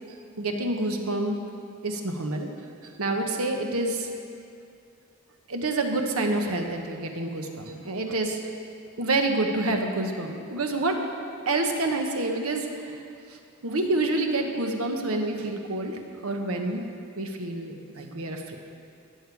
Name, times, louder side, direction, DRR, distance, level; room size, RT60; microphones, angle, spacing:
voice 1, 0.4-1.4 1.8-2.5 2.8-4.1 5.5-8.4 9.0-10.9 11.5-13.0 13.6-16.8 17.2-18.6, right 2 dB, 85° right, 3 dB, 1.1 m, -28 dB
16.5 x 6.8 x 4.8 m, 2.5 s
head